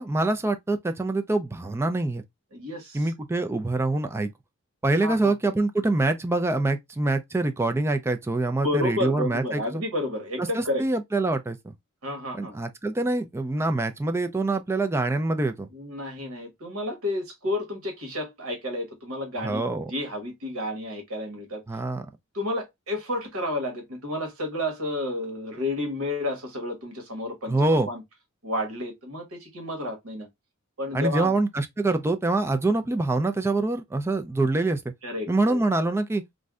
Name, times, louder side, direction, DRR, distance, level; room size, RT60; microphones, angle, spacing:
voice 1, 0.0-2.2 2.9-4.3 4.8-9.8 10.4-11.7 12.3-15.7 19.4-19.8 21.7-22.0 27.5-27.9 30.9-34.8 35.3-36.2, right 2 dB, 10° right, 0.3 m, -25 dB
voice 2, 2.5-3.1 5.0-5.3 8.6-10.8 12.0-12.6 15.7-19.6 19.9-21.6 22.3-27.5 27.9-28.0 28.4-30.3 30.8-31.3 35.0-35.6, left 1 dB, 80° right, 1.1 m, -31 dB
2.5 x 2.1 x 3.4 m
head